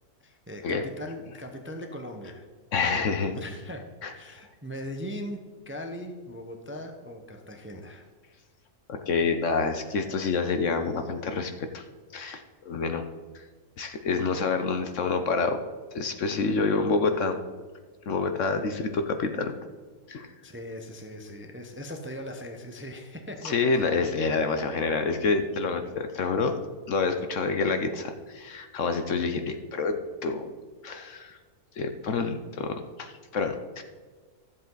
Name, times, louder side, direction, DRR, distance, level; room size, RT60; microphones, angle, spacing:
voice 1, 0.2-2.5 3.3-8.1 18.5-18.9 20.4-23.9, equal, 10° right, 4 dB, 0.7 m, -40 dB
voice 2, 2.7-3.4 4.0-4.1 8.9-11.8 12.1-13.1 13.3-13.4 13.8-15.6 15.9-17.4 18.1-19.5 20.1-20.3 23.4-26.5 26.9-30.6 30.8-31.4 31.8-33.8, left 4 dB, 60° left, 7 dB, 1.0 m, -27 dB
13.0 x 7.6 x 3.9 m, 1.5 s
omnidirectional pair, 1.6 m